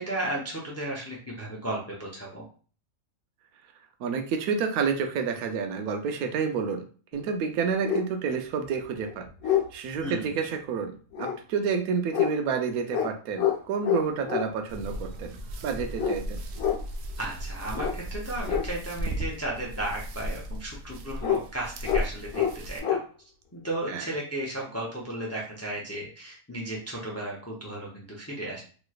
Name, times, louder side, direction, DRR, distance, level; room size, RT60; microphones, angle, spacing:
voice 1, 0.0-2.4 10.0-10.4 17.2-23.0 23.5-28.6, right 1 dB, 20° left, -3 dB, 0.4 m, -34 dB
voice 2, 4.0-6.8 7.1-15.4 15.6-16.4 23.9-24.1, right 6 dB, 90° right, 5 dB, 1.1 m, -29 dB
sound 1, 7.1-7.2 7.8-8.1 8.7-8.8 9.0-9.7 11.1-11.4 12.1-12.3 12.9-13.1 13.4-13.6 13.8-14.5 16.0-16.2 16.6-16.8 17.7-17.9 18.4-18.6 21.2-21.4 21.8-22.0 22.3-22.5 22.8-23.0, left 9 dB, 90° left, 1.3 m, -26 dB
sound 2, 14.7-22.8, right 1 dB, 65° right, 0.7 m, -36 dB
3.1 x 3.1 x 2.3 m, 0.40 s
omnidirectional pair, 1.5 m